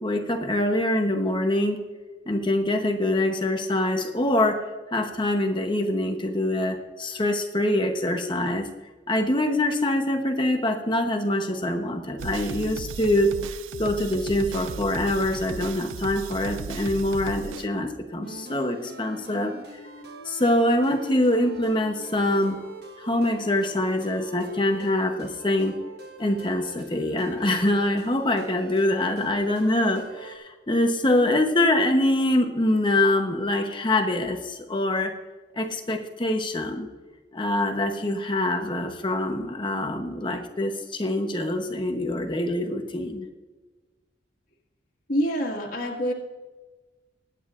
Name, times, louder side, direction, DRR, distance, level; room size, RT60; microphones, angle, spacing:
voice 1, 0.0-1.8 2.3-8.7 9.1-13.3 13.8-19.5 20.2-22.6 23.0-25.8 26.2-35.1 35.6-36.9 37.3-43.2, left 1 dB, 25° left, 5 dB, 0.9 m, -24 dB
sound 1, 12.2-17.7, right 6 dB, 90° right, 0.4 m, -36 dB
sound 2, 18.2-30.4, right 3 dB, 55° right, 1.3 m, -44 dB
voice 2, 45.1-46.1, equal, 45° left, -2 dB, 1.8 m, -26 dB
21.5 x 9.3 x 2.5 m, 1.3 s
head